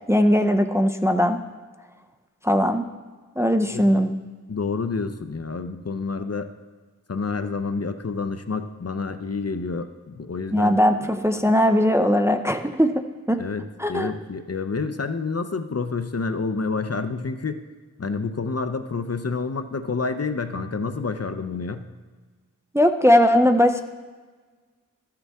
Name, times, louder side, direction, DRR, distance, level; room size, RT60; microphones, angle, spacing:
voice 1, 0.1-1.4 2.4-2.8 3.4-4.1 10.5-12.9 13.3-13.4 13.8-14.1 22.7-23.8, equal, 10° right, 6 dB, 0.5 m, -19 dB
voice 2, 4.5-6.5 7.1-10.8 13.4-13.6 13.9-17.6 18.0-21.8, left 4 dB, 45° left, 9 dB, 0.6 m, -28 dB
13.5 x 6.8 x 3.5 m, 1.4 s
wide cardioid pair, 40°, 33 cm